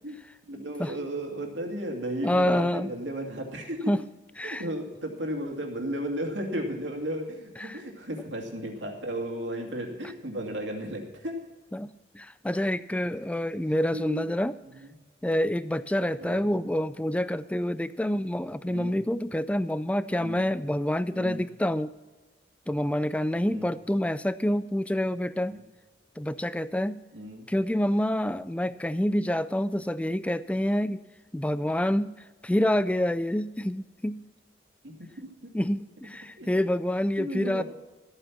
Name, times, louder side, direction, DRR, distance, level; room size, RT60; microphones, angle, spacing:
voice 1, 0.5-3.8 4.4-11.3 13.9-14.3 14.7-14.9 16.2-16.5 18.7-19.0 20.2-20.5 21.1-21.4 23.4-23.7 25.5-25.6 27.1-27.4 34.8-35.3 36.4-36.5 37.2-37.6, right 1 dB, 75° right, 2 dB, 2.4 m, -34 dB
voice 2, 2.2-2.9 3.9-4.0 4.4-4.7 7.6-7.8 11.7-14.6 15.2-21.9 22.7-25.6 26.2-27.0 27.5-31.0 31.3-32.1 32.4-34.2 35.5-37.6, left 1 dB, 5° left, 15 dB, 0.3 m, -27 dB
14.0 x 8.9 x 5.9 m, 1.2 s
head